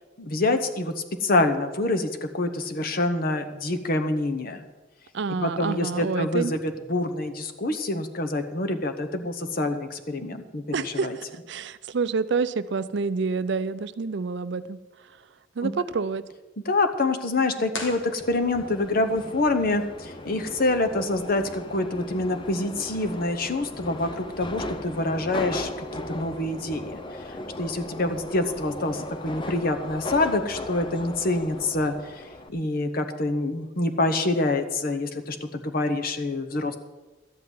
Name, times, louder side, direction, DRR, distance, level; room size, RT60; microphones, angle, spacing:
voice 1, 0.2-0.9 1.2-4.6 5.4-11.2 15.6-15.7 16.6-32.2 32.5-36.8, left 2 dB, 50° left, 7 dB, 1.0 m, -26 dB
voice 2, 5.1-6.5 10.7-14.8 15.6-16.3, right 4 dB, 60° right, 14 dB, 0.5 m, -28 dB
sound 1, 17.7-18.9, left 3 dB, 80° left, 2.0 m, -38 dB
Subway metro underground, 18.2-32.5, left 1 dB, 25° left, 0.7 m, -37 dB
12.5 x 5.8 x 9.3 m, 1.2 s
head